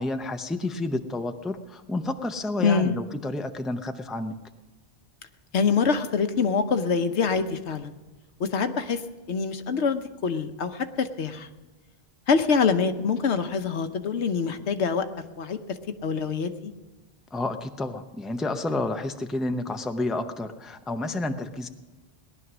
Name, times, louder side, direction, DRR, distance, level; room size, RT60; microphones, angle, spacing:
voice 1, 0.0-4.4 17.3-21.7, left 2 dB, ahead, 7 dB, 0.5 m, -30 dB
voice 2, 2.6-3.0 5.5-7.9 8.4-9.0 9.3-11.5 12.3-15.1 15.4-16.7, left 5 dB, 90° left, 8 dB, 1.2 m, -25 dB
18.5 x 11.0 x 6.1 m, 1.2 s
omnidirectional pair, 1.1 m